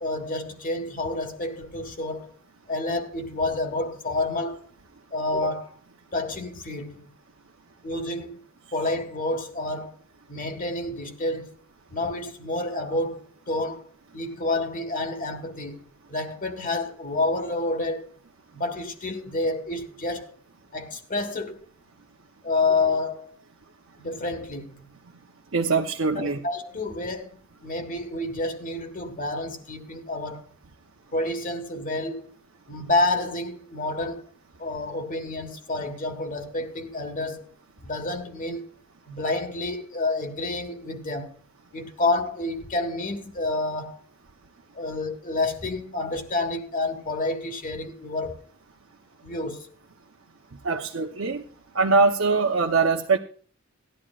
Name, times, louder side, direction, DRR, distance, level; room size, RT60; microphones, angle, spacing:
voice 1, 0.0-2.4 2.7-4.7 5.1-5.8 6.1-7.1 7.8-8.4 8.7-10.0 10.3-11.6 11.9-13.9 14.1-18.1 18.5-20.4 20.7-21.7 22.4-23.4 24.0-24.9 26.2-30.5 31.1-32.3 32.7-34.3 34.6-37.5 37.8-38.7 39.1-41.4 41.7-44.0 44.7-48.4 49.2-49.7, left 2 dB, 40° left, 1.5 m, -29 dB
voice 2, 25.5-26.4 50.6-51.4 51.7-53.2, right 4 dB, 75° right, 0.9 m, -22 dB
17.0 x 11.5 x 2.5 m
head